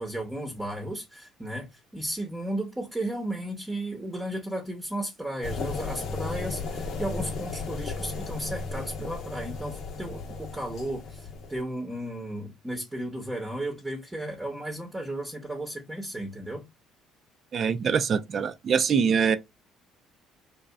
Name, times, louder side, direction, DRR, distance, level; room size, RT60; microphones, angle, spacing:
voice 1, 0.0-16.6, right 1 dB, 15° right, 0.8 m, -34 dB
sound 1, 5.4-11.6, left 4 dB, 65° left, 0.6 m, -35 dB
voice 2, 17.5-19.4, right 6 dB, 50° right, 0.3 m, -24 dB
2.8 x 2.2 x 2.2 m
hypercardioid pair, 60°, 0 cm